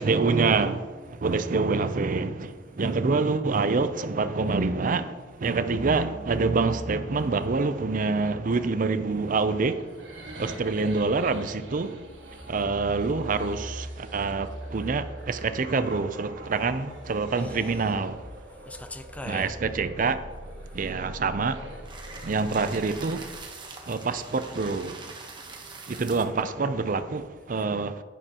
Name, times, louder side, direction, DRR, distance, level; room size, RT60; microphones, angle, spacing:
voice 1, 0.0-9.8 10.4-12.0 12.5-18.2 19.2-20.2 20.7-21.6 22.2-23.3 23.9-25.0 25.9-28.0, right 4 dB, 45° right, 0.5 m, -26 dB
sound 1, 5.7-23.4, right 1 dB, 85° right, 1.4 m, -42 dB
voice 2, 17.4-17.9 18.7-19.5 20.7-20.9 23.8-24.0 25.3-26.0, left 1 dB, 10° left, 0.5 m, -42 dB
sound 2, 21.8-26.4, right 4 dB, 25° right, 1.0 m, -43 dB
11.0 x 9.0 x 2.9 m
head